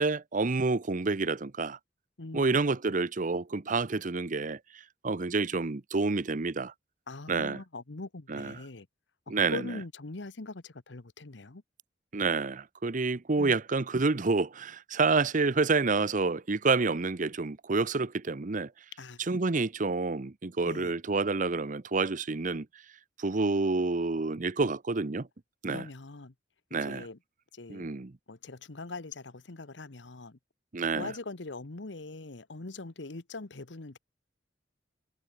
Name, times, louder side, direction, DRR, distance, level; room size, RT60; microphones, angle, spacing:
voice 1, 0.0-1.8 2.3-4.6 5.0-6.7 7.3-7.6 8.3-8.6 9.3-9.7 12.1-18.7 19.2-22.7 23.2-25.3 25.6-25.9 26.7-27.1 27.7-28.1 30.7-31.1, right 3 dB, 45° right, 0.8 m, -28 dB
voice 2, 2.2-2.5 7.1-8.9 9.5-11.6 13.4-13.6 19.0-19.2 20.7-20.9 25.7-26.3 26.8-27.2 27.5-27.9 28.3-30.4 30.9-34.0, left 3 dB, 80° left, 1.2 m, -42 dB
head